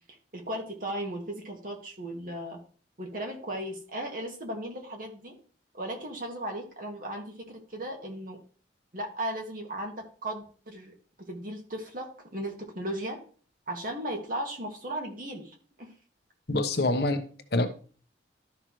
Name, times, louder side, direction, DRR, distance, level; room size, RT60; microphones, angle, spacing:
voice 1, 0.3-2.6 3.0-5.4 5.7-8.4 8.9-10.9 11.3-13.2 13.7-15.9, right 1 dB, 50° right, 2.1 m, -36 dB
voice 2, 16.5-17.7, left 2 dB, 55° left, 1.0 m, -26 dB
12.5 x 5.7 x 3.1 m
head